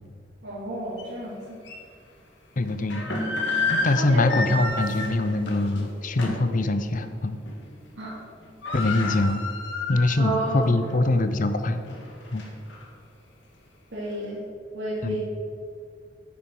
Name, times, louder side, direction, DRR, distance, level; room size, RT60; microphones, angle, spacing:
voice 1, 0.4-1.6 4.0-4.5 8.0-8.1 10.2-10.7 13.9-14.4 14.7-15.3, right 1 dB, 75° right, -8 dB, 2.6 m, -30 dB
sound 1, 1.0-1.1 1.6-1.8 2.7-6.5 6.9-7.1 7.5-8.1 8.4-10.4 10.8-10.9 11.5-12.8, left 3 dB, 75° left, 1.8 m, -30 dB
voice 2, 2.6-3.1 3.7-7.4 8.7-9.4 9.9-11.8 12.3-12.4 15.0-15.2, left 2 dB, 45° left, 10 dB, 0.6 m, -23 dB
9.9 x 7.2 x 4.7 m, 2.3 s
head